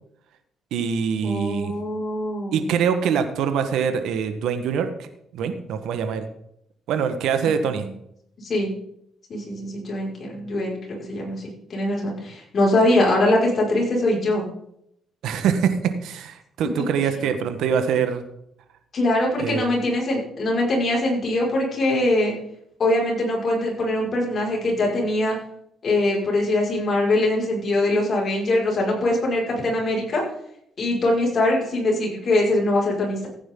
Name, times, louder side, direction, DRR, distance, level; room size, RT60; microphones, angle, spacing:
voice 1, 0.7-1.7 2.5-5.1 5.3-6.2 6.9-7.8 15.2-18.2 19.4-19.6, right 7 dB, 85° right, 8 dB, 1.3 m, -24 dB
voice 2, 1.2-2.7 7.4-7.5 7.8-7.9 8.4-8.7 9.3-10.8 11.1-14.4 18.9-22.3 22.8-25.4 25.8-30.2 30.8-33.3, left 1 dB, 50° left, -2 dB, 5.5 m, -22 dB
15.5 x 9.3 x 3.8 m, 0.74 s
cardioid pair, 90°, 0 cm